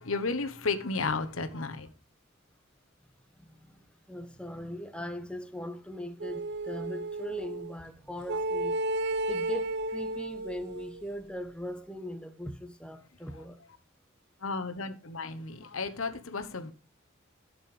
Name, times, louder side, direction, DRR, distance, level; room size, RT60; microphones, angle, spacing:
voice 1, 0.0-1.9 14.4-16.7, left 3 dB, 90° left, 1.2 m, -33 dB
voice 2, 3.4-8.8 9.3-13.6, left 1 dB, 5° left, 1.1 m, -40 dB
sound 1, 6.2-7.7 8.3-11.1, right 2 dB, 55° right, 0.6 m, -33 dB
12.0 x 6.9 x 5.0 m
head